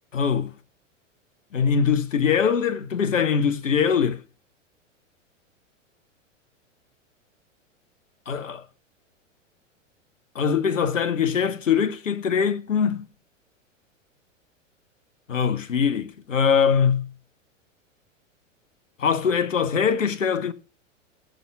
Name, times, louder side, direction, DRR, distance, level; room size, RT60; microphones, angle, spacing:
voice 1, 0.1-0.5 1.5-4.2 8.3-8.6 10.3-13.0 15.3-17.1 19.0-20.5, left 7 dB, 75° left, 1.1 m, -22 dB
19.5 x 7.2 x 2.2 m
figure-of-eight pair, 95°, 38 cm